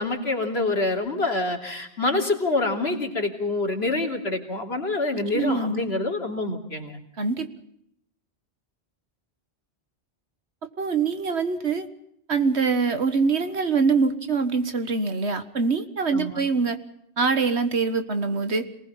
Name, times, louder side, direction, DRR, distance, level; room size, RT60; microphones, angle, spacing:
voice 1, 0.0-7.0 16.1-16.4, left 2 dB, 65° left, 2 dB, 3.5 m, -26 dB
voice 2, 5.3-5.9 7.2-7.5 10.8-11.9 12.3-16.8 17.2-18.7, right 4 dB, 70° right, 10 dB, 1.9 m, -24 dB
27.5 x 19.5 x 5.8 m, 0.74 s
omnidirectional pair, 1.1 m